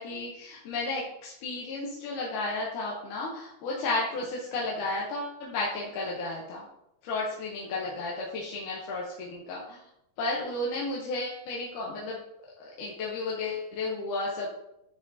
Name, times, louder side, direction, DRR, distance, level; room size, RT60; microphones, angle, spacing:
voice 1, 0.0-6.6 7.0-9.8 10.2-12.2 12.6-14.5, left 2 dB, 85° left, -4 dB, 2.5 m, -33 dB
10.0 x 4.2 x 2.7 m, 0.82 s
omnidirectional pair, 3.5 m